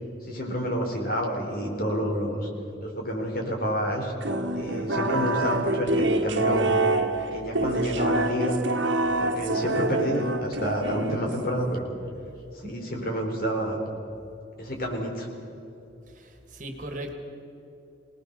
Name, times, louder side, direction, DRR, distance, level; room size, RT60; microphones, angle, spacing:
voice 1, 0.2-2.5 2.8-4.1 4.6-6.8 7.3-8.6 9.2-11.9 12.5-13.8 14.6-15.3, equal, 50° left, 1 dB, 4.2 m, -29 dB
sound 1, 4.2-11.6, right 2 dB, 85° right, 1.4 m, -26 dB
voice 2, 16.1-17.1, right 1 dB, 45° right, 4 dB, 2.4 m, -38 dB
25.0 x 19.0 x 6.9 m, 2.9 s
head